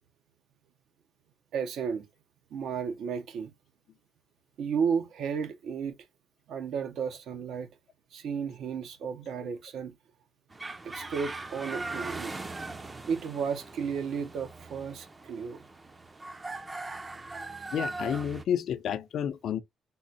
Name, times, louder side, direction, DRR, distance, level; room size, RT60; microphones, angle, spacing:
voice 1, 1.5-2.1 2.5-3.5 4.6-6.0 6.5-7.7 8.1-9.9 10.8-12.3 13.1-15.6, right 6 dB, 75° right, 0.7 m, -33 dB
sound 1, 10.5-18.4, right 3 dB, 25° right, 0.5 m, -40 dB
voice 2, 17.7-19.6, left 9 dB, 70° left, 0.5 m, -30 dB
3.7 x 2.0 x 2.7 m
cardioid pair, 90°, 0 cm